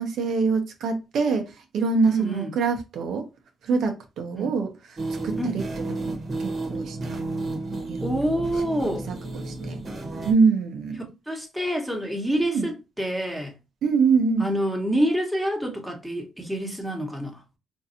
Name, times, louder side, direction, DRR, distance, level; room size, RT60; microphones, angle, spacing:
voice 1, 0.0-3.3 3.6-6.1 6.4-7.2 7.9-8.4 8.8-9.0 9.3-9.8 10.3-11.0 12.4-12.7 13.8-14.5, right 4 dB, 70° right, 0.8 m, -25 dB
voice 2, 2.1-2.5 4.3-4.5 5.4-5.6 8.0-9.1 11.3-13.6 14.4-17.4, right 1 dB, ahead, 1.2 m, -27 dB
sound 1, 5.0-10.3, right 2 dB, 40° right, 1.2 m, -32 dB
3.9 x 2.6 x 2.7 m
cardioid pair, 90°, 0 cm